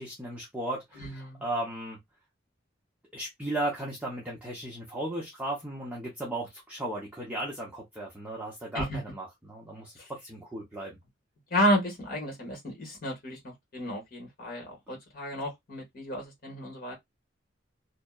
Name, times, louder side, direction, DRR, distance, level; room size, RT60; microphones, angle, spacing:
voice 1, 0.0-2.0 3.1-11.0, right 1 dB, 5° right, 0.6 m, -36 dB
voice 2, 0.9-1.4 8.7-9.0 11.5-16.9, equal, 45° left, 1.3 m, -31 dB
2.7 x 2.0 x 2.2 m
head